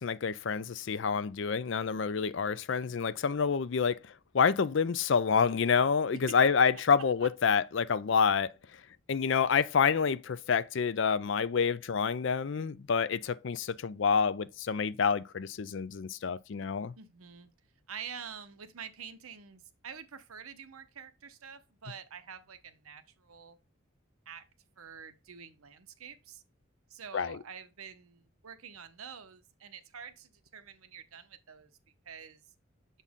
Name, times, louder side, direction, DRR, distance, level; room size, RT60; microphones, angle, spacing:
voice 1, 0.0-4.0 4.3-8.5 9.1-16.9 27.1-27.4, left 6 dB, 60° left, 0.4 m, -28 dB
voice 2, 17.0-17.5 17.9-23.6 24.3-24.4 24.8-26.4 26.9-31.7 32.1-32.5, right 6 dB, 85° right, 0.9 m, -47 dB
7.2 x 4.1 x 3.5 m
head